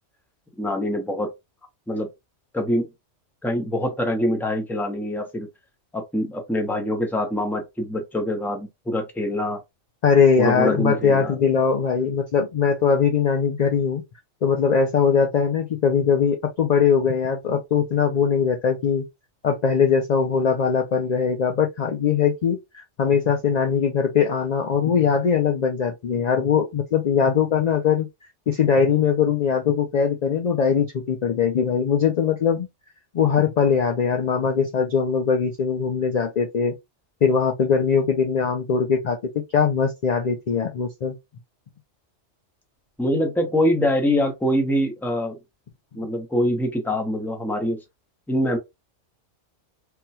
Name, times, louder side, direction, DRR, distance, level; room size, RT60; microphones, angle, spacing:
voice 1, 0.6-1.3 1.9-2.1 2.5-2.9 3.4-5.5 5.9-9.6 10.4-11.4 43.0-45.4 45.9-47.8 48.3-48.6, left 1 dB, ahead, 0.6 m, -24 dB
voice 2, 10.0-14.0 14.4-19.0 19.4-28.1 28.5-32.7 33.1-36.7 37.2-39.2 39.5-41.2, left 6 dB, 55° left, 0.4 m, -21 dB
3.6 x 2.2 x 2.8 m
omnidirectional pair, 1.2 m